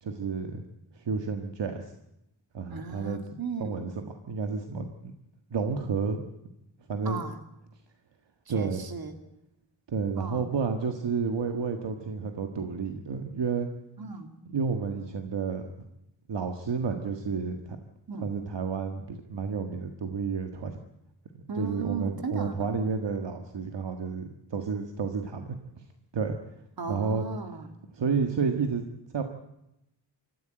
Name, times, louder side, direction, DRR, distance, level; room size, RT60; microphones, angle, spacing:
voice 1, 0.0-0.6 0.9-1.9 2.5-3.2 3.6-4.9 5.5-6.2 6.9-7.2 8.5-8.8 9.9-13.7 14.5-15.6 16.3-17.8 18.2-20.8 21.3-25.6 26.1-26.4 26.9-27.2 27.9-28.9 29.1-29.2, right 5 dB, 65° right, 5 dB, 1.7 m, -30 dB
voice 2, 2.7-3.8 7.0-7.4 8.5-9.2 10.2-10.5 14.0-14.4 18.1-18.3 21.5-22.7 26.8-27.8, right 4 dB, 50° right, 7 dB, 2.4 m, -36 dB
25.5 x 14.5 x 8.9 m, 0.86 s
wide cardioid pair, 155°, 46 cm